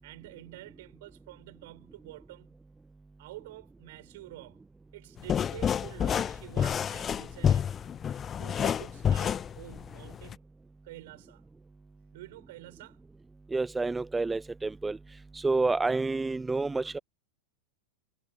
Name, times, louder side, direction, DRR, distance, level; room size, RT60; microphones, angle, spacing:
voice 1, 0.0-2.6 3.2-4.7 4.9-7.9 8.4-10.5 10.8-11.5 12.1-13.0, right 18 dB, 50° right, 5.8 m, -48 dB
sound 1, 5.2-10.3, left 8 dB, 25° left, 0.5 m, -29 dB
voice 2, 13.5-15.0 15.4-17.0, right 3 dB, 10° right, 0.8 m, -29 dB
figure-of-eight pair, 90°, 0 cm